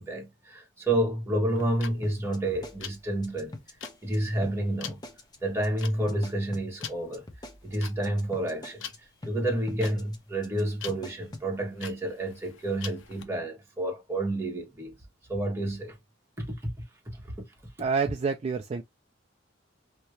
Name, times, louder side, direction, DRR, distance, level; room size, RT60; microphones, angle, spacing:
voice 1, 0.0-3.5 4.0-5.0 5.4-7.2 7.6-8.9 9.2-15.0 15.3-16.0 16.4-16.7 17.1-17.2, right 1 dB, 15° right, 1.2 m, -29 dB
sound 1, 1.5-13.2, left 8 dB, 85° left, 0.6 m, -44 dB
sound 2, 2.0-4.2 4.4-4.6 4.9-5.4 5.6-5.8 6.1-9.0 9.2-9.4 9.7-10.2 10.4-10.6 10.9-11.5, left 1 dB, 20° left, 0.7 m, -43 dB
voice 2, 17.8-18.8, right 5 dB, 35° right, 0.3 m, -28 dB
2.8 x 2.7 x 3.1 m
head